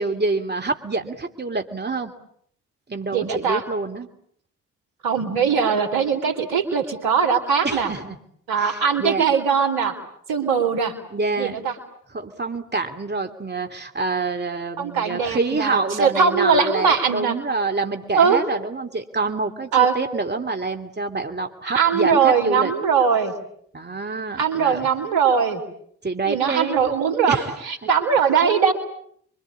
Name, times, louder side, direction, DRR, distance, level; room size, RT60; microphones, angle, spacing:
voice 1, 0.0-2.1 2.9-4.1 7.6-8.2 8.5-9.2 11.1-11.6 12.1-22.7 23.7-24.9 26.0-26.8 27.3-27.5, right 3 dB, 25° right, 5 dB, 3.0 m, -26 dB
voice 2, 3.1-3.6 5.0-7.9 8.5-9.9 10.3-10.9 11.4-11.7 14.8-17.4 18.1-18.4 19.7-19.9 21.7-23.3 24.4-25.6 26.3-27.4 27.7-28.7, right 6 dB, 70° right, 9 dB, 3.8 m, -20 dB
27.5 x 24.0 x 8.7 m, 0.67 s
hypercardioid pair, 40°, 39 cm